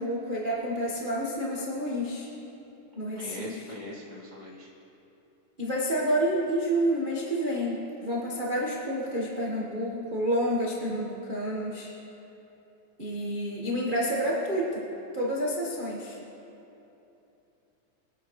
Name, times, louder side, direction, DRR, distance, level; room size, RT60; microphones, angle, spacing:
voice 1, 0.0-2.3 3.0-3.6 5.6-11.9 13.0-14.9 15.1-16.2, equal, 70° right, -5 dB, 0.4 m, -29 dB
voice 2, 3.1-4.7, left 1 dB, 55° left, -5 dB, 0.5 m, -41 dB
23.0 x 10.0 x 3.2 m, 2.9 s
omnidirectional pair, 3.5 m